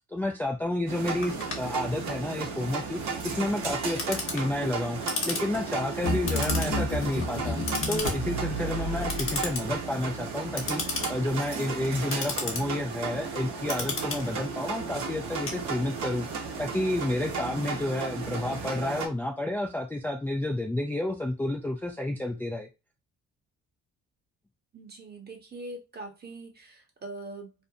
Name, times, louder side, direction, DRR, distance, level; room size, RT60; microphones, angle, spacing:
voice 1, 0.1-5.0 5.2-7.6 7.9-10.8 11.1-16.3 16.6-22.7, left 1 dB, 5° left, 0.3 m, -30 dB
sound 1, 0.9-19.1, right 5 dB, 65° right, 0.8 m, -35 dB
Clock, 1.2-16.2, left 3 dB, 45° left, 0.9 m, -36 dB
sound 2, 6.0-9.7, left 1 dB, 75° left, 0.8 m, -31 dB
voice 2, 7.3-7.6 24.7-27.5, right 2 dB, 35° right, 0.9 m, -42 dB
2.6 x 2.1 x 2.6 m
cardioid pair, 90°, 30 cm